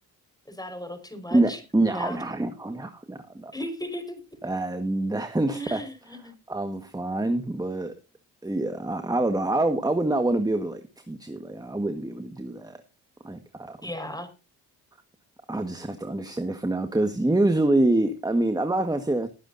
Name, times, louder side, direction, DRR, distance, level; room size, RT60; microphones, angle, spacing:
voice 1, 0.5-1.6 1.9-2.2 3.5-4.2 5.5-6.3 13.8-14.3, left 1 dB, 10° left, 9 dB, 5.1 m, -36 dB
voice 2, 1.3-3.5 4.4-5.9 6.5-7.9 8.4-10.8 11.1-12.8 13.2-13.9 15.5-19.3, right 2 dB, 10° right, 8 dB, 1.6 m, -26 dB
20.0 x 9.9 x 2.7 m, 0.30 s
supercardioid pair, 65°, 42 cm